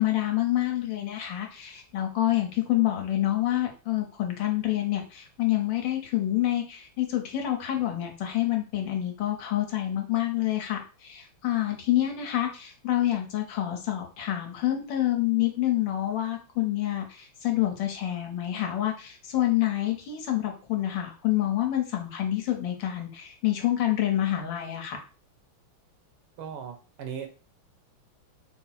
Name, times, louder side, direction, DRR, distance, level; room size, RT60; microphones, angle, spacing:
voice 1, 0.0-25.0, left 13 dB, 70° left, 2 dB, 1.5 m, -27 dB
voice 2, 26.4-27.3, right 7 dB, 85° right, 6 dB, 1.6 m, -37 dB
4.2 x 2.0 x 4.0 m, 0.35 s
omnidirectional pair, 2.2 m